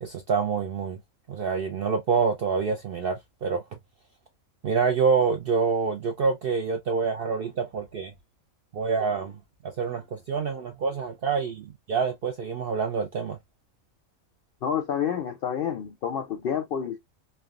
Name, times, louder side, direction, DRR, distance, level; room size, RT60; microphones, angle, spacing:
voice 1, 0.0-1.0 1.3-3.6 4.6-8.1 8.7-9.4 9.6-13.4, right 5 dB, 70° right, 0.5 m, -26 dB
voice 2, 14.6-17.0, left 8 dB, 75° left, 0.5 m, -29 dB
3.3 x 2.2 x 2.3 m
omnidirectional pair, 1.5 m